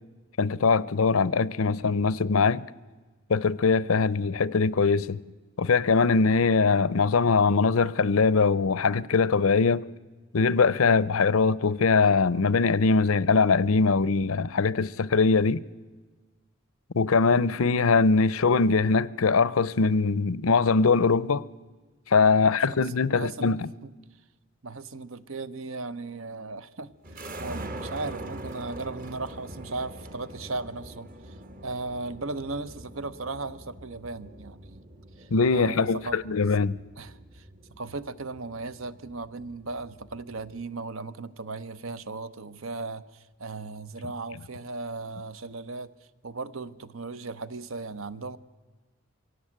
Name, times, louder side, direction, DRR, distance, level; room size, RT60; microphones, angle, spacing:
voice 1, 0.4-2.7 3.3-5.2 5.6-9.9 10.3-15.6 16.9-21.5 22.1-23.6 35.3-36.8, left 4 dB, 85° left, 0.6 m, -22 dB
voice 2, 22.4-23.6 23.8-23.9 24.6-34.8 35.2-36.2 37.0-45.9 46.2-48.4, right 3 dB, 80° right, 0.9 m, -37 dB
sound 1, 27.0-40.6, right 1 dB, 40° right, 1.2 m, -44 dB
24.0 x 17.0 x 8.8 m
head